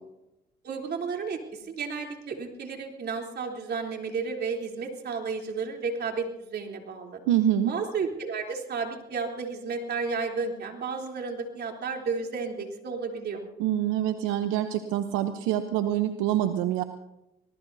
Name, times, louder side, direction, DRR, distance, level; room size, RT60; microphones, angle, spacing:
voice 1, 0.6-7.2 7.7-13.4, right 5 dB, 55° right, 1 dB, 3.5 m, -32 dB
voice 2, 7.3-7.7 13.6-16.8, right 11 dB, 85° right, 9 dB, 0.9 m, -26 dB
25.5 x 19.0 x 2.8 m, 0.92 s
supercardioid pair, 65°, 20 cm